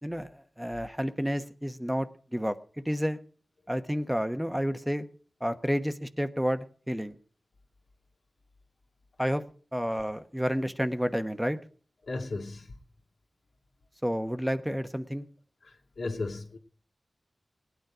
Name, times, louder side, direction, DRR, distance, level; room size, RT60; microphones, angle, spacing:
voice 1, 0.0-2.6 2.8-3.2 3.7-5.1 5.4-7.1 9.2-9.4 9.7-11.6 14.0-15.3, equal, 5° right, 9 dB, 1.1 m, -30 dB
voice 2, 12.0-12.8 15.6-16.6, left 3 dB, 85° left, 0 dB, 2.4 m, -35 dB
18.5 x 9.4 x 5.0 m, 0.44 s
cardioid pair, 55°, 0 cm